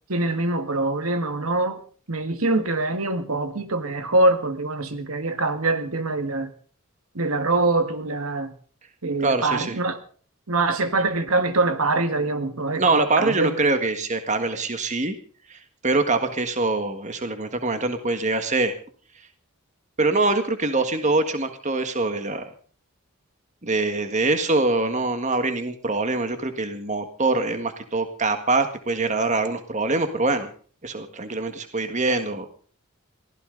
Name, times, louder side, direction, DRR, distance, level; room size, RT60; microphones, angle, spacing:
voice 1, 0.1-1.8 2.1-6.5 7.1-8.5 9.0-10.0 10.5-13.7, right 2 dB, 85° right, 1.8 m, -24 dB
voice 2, 9.2-9.7 12.8-15.2 15.5-18.7 20.0-22.5 23.6-30.5 30.8-32.5, right 3 dB, 35° right, 1.7 m, -24 dB
22.5 x 15.5 x 3.9 m
head